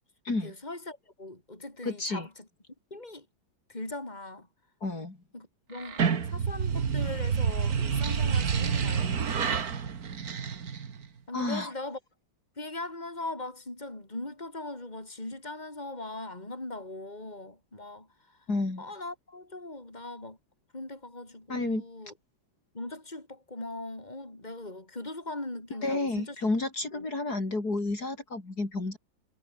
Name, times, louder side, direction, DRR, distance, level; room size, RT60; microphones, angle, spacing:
voice 1, 0.4-2.3 2.9-3.3 3.7-4.5 5.3-6.0 6.3-9.5 11.3-12.0 12.6-18.1 18.8-20.4 20.7-22.1 22.7-26.4 26.9-27.1, left 2 dB, 20° left, 5.4 m, -40 dB
voice 2, 1.8-2.3 4.8-5.2 11.3-11.7 18.5-18.8 21.5-21.8 25.8-29.0, left 2 dB, 50° left, 5.3 m, -30 dB
sound 1, 5.7-11.1, right 6 dB, 50° right, 2.1 m, -28 dB
omnidirectional pair, 2.1 m